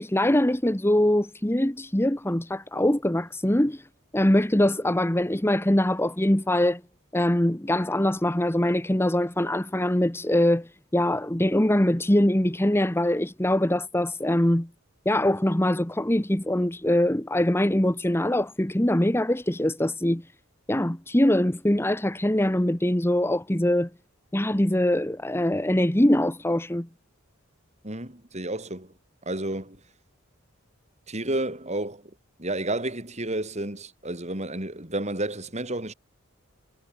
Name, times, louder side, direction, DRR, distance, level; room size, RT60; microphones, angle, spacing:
voice 1, 0.0-3.8 4.1-6.8 7.1-14.7 15.0-20.2 20.7-23.9 24.3-26.9, left 1 dB, 10° left, 1.1 m, -23 dB
voice 2, 27.8-28.9 29.3-29.8 31.1-32.0 32.4-35.9, right 1 dB, 30° right, 5.4 m, -31 dB
head